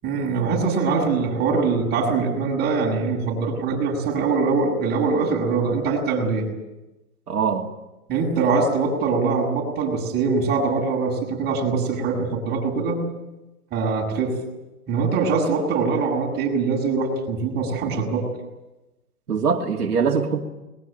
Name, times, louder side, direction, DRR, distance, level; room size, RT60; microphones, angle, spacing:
voice 1, 0.0-6.5 8.1-13.0 13.7-14.4 14.9-18.3, right 4 dB, 20° right, -1 dB, 7.4 m, -23 dB
voice 2, 7.3-7.6 19.3-20.4, right 6 dB, 85° right, 1 dB, 2.8 m, -22 dB
21.5 x 21.0 x 9.3 m, 1.0 s
hypercardioid pair, 140°, 45 cm